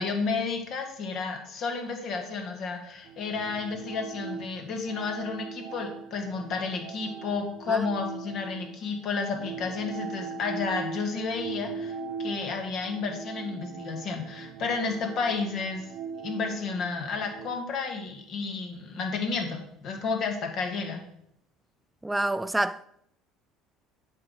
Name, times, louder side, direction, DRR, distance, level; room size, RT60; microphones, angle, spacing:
voice 1, 0.0-15.8 16.2-21.0, left 4 dB, 50° left, 1.6 m, -31 dB
sound 1, 3.1-8.9 9.3-17.5, right 5 dB, 55° right, 0.7 m, -40 dB
voice 2, 22.0-22.8, right 2 dB, 10° right, 0.4 m, -28 dB
7.6 x 4.8 x 5.4 m
figure-of-eight pair, 60°, 0 cm